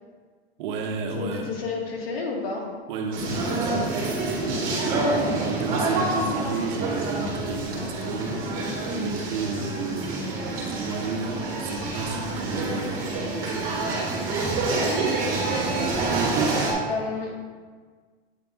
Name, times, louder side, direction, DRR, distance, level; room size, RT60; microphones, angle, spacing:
voice 1, 0.6-1.6 2.9-8.5 8.9-13.1 16.0-16.7, right 4 dB, 55° right, 3 dB, 1.0 m, -32 dB
voice 2, 1.2-2.7 16.9-17.4, left 4 dB, 75° left, 0 dB, 1.6 m, -30 dB
sound 1, 3.1-16.7, right 2 dB, 30° right, 1.7 m, -27 dB
8.4 x 3.7 x 3.7 m, 1.5 s
supercardioid pair, 155°, 30 cm